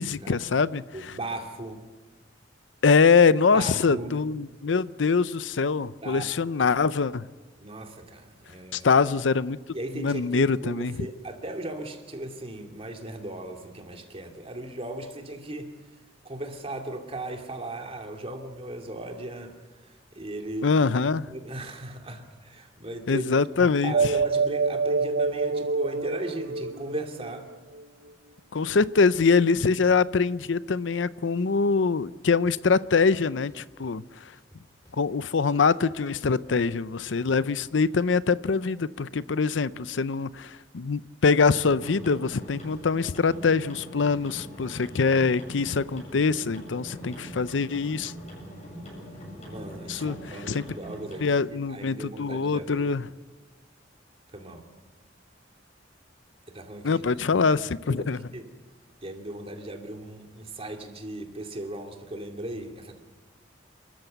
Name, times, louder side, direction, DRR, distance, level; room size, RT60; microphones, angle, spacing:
voice 1, 0.0-1.1 2.8-7.2 8.7-9.6 9.9-10.9 20.6-21.3 23.1-24.1 28.5-34.3 35.0-48.1 49.9-50.2 50.5-50.6 51.2-53.1 56.8-58.2, left 4 dB, 80° left, 17 dB, 0.6 m, -24 dB
voice 2, 0.9-1.8 3.5-4.2 6.0-6.2 7.6-8.9 9.7-15.7 16.2-19.6 20.1-20.8 21.3-23.2 23.6-27.5 37.2-37.3 44.7-45.1 49.5-52.9 54.3-54.7 56.5-57.0 57.3-57.5 57.9-58.5 59.0-63.0, right 1 dB, 30° right, 4 dB, 2.6 m, -37 dB
sound 1, 23.9-27.8, right 4 dB, 75° right, 0.7 m, -26 dB
sound 2, 32.4-32.5 33.0-33.9 34.3-35.4 35.7-37.8, left 1 dB, 20° left, 3.5 m, -56 dB
sound 3, 41.6-51.3, equal, 40° left, 7.6 m, -42 dB
29.0 x 14.0 x 8.0 m, 1.3 s
head